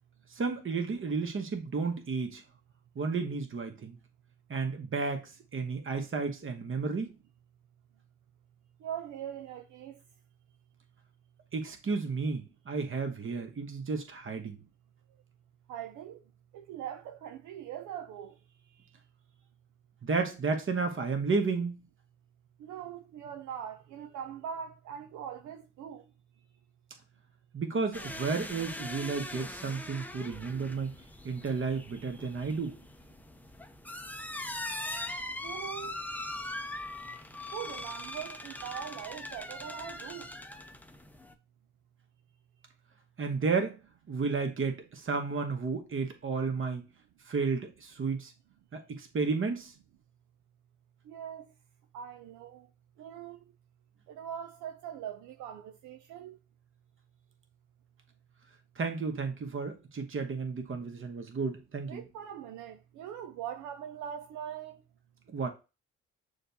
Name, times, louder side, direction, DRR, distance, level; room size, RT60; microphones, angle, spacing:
voice 1, 0.3-2.4 2.9-4.0 4.5-7.1 11.5-14.6 20.0-21.8 27.5-30.9 31.2-32.8 43.2-43.8 44.1-46.9 47.3-48.3 48.7-49.7 58.8-62.0 65.3-65.5, right 4 dB, 40° right, 1.1 m, -32 dB
voice 2, 8.8-10.0 15.7-16.2 16.5-18.3 22.6-26.0 35.4-36.0 37.5-40.3 51.1-51.5 51.9-52.7 53.0-53.4 54.1-56.4 61.9-64.8, right 9 dB, 75° right, 0.5 m, -41 dB
sound 1, 27.9-41.3, left 1 dB, 5° left, 0.6 m, -41 dB
6.4 x 2.4 x 2.7 m
supercardioid pair, 50°, 30 cm